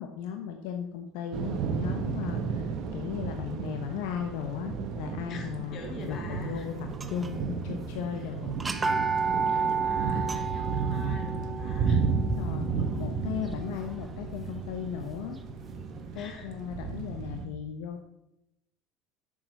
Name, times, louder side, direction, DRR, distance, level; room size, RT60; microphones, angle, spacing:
voice 1, 0.0-5.8 6.0-8.5 9.5-9.8 12.2-15.4 16.1-18.0, left 8 dB, 80° left, 4 dB, 0.9 m, -36 dB
Thunder / Rain, 1.3-17.5, right 5 dB, 55° right, 1.3 m, -33 dB
voice 2, 5.3-6.7 8.2-8.3 9.4-12.0 16.1-16.6, left 4 dB, 45° left, 3 dB, 2.4 m, -45 dB
sound 1, 6.9-7.5 7.9-8.0 8.5-14.4, right 5 dB, 20° right, 0.7 m, -32 dB
7.4 x 6.7 x 6.5 m, 0.86 s
supercardioid pair, 115°, 0 cm